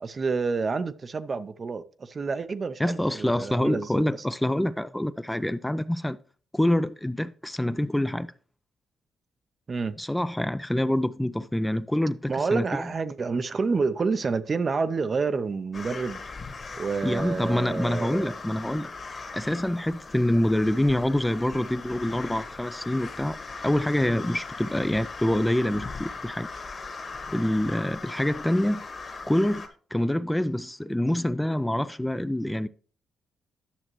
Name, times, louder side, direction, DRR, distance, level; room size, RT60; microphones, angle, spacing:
voice 1, 0.0-4.0 9.7-10.0 12.3-16.2 16.8-18.3, right 4 dB, 40° right, 0.6 m, -28 dB
voice 2, 2.8-6.2 6.5-8.3 10.0-12.9 17.0-18.9 19.3-23.4 23.6-26.5 27.3-28.8 29.3-29.6 29.9-32.7, left 1 dB, 5° left, 0.4 m, -26 dB
sound 1, 15.7-29.7, left 4 dB, 40° left, 1.6 m, -39 dB
10.0 x 6.5 x 3.1 m
cardioid pair, 75°, 0 cm